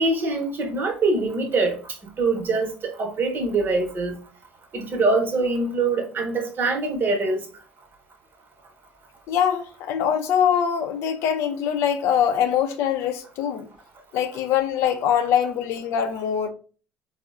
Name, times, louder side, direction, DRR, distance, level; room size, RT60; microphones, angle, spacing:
voice 1, 0.0-1.8 2.2-4.1 4.7-7.5, right 3 dB, 45° right, 0.8 m, -23 dB
voice 2, 9.3-13.7 14.1-16.5, left 8 dB, 70° left, 0.4 m, -23 dB
3.5 x 2.0 x 2.4 m
hypercardioid pair, 70°, 5 cm